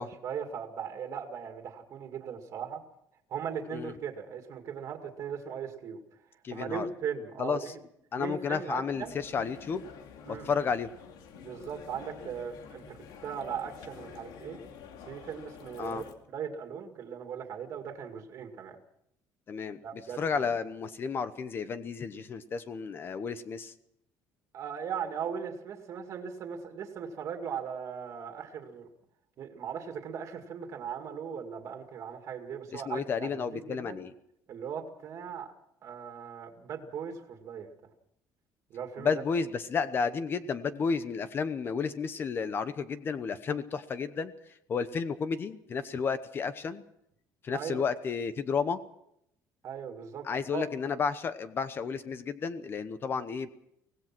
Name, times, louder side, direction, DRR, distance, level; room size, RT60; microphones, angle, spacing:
voice 1, 0.0-2.8 3.3-6.0 6.5-7.8 8.2-9.1 10.3-10.5 11.3-13.0 13.2-14.6 15.0-18.8 19.8-20.2 24.5-28.9 29.4-34.0 34.5-35.5 35.8-37.7 38.7-39.1 47.5-47.8 49.6-50.6, right 7 dB, 45° right, 4 dB, 2.3 m, -38 dB
voice 2, 6.4-6.9 7.4-7.7 8.1-9.8 10.3-10.9 15.8-16.0 19.5-19.8 20.2-23.7 32.7-34.1 39.0-46.8 47.4-48.8 50.2-53.5, left 5 dB, 30° left, 12 dB, 0.9 m, -32 dB
sound 1, 8.9-16.1, left 6 dB, 75° left, 2.6 m, -48 dB
24.5 x 17.5 x 6.1 m, 0.76 s
cardioid pair, 160°, 7 cm